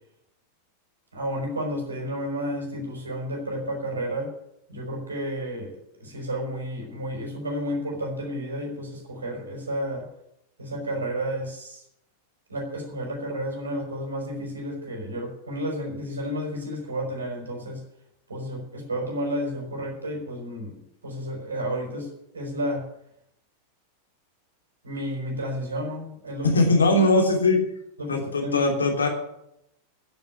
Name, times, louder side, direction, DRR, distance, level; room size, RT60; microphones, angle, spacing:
voice 1, 1.1-4.3 4.7-10.1 10.6-11.8 12.5-17.8 18.3-22.8 24.8-26.6 26.9-27.0 28.0-28.7, equal, 75° right, 0 dB, 5.4 m, -31 dB
voice 2, 26.4-27.6 28.1-29.1, left 2 dB, 75° left, 2 dB, 3.1 m, -20 dB
10.5 x 9.2 x 9.9 m, 0.78 s
figure-of-eight pair, 90°, 0 cm